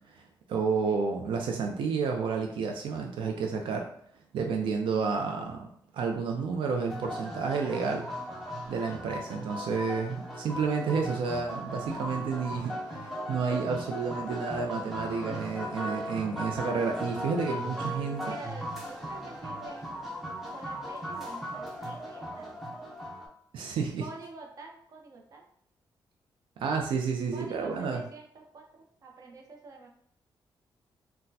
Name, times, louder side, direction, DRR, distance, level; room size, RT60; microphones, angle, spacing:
voice 1, 0.5-3.9 4.3-5.7 5.9-8.0 8.7-18.4 23.5-24.1 26.6-28.0, right 5 dB, 85° right, 2 dB, 0.4 m, -30 dB
sound 1, 6.9-23.3, equal, 5° right, 0.6 m, -38 dB
voice 2, 18.2-20.1 20.5-22.6 24.0-25.4 27.3-29.9, right 3 dB, 45° right, 0 dB, 0.7 m, -47 dB
4.1 x 2.1 x 2.7 m, 0.64 s
wide cardioid pair, 170°, 8 cm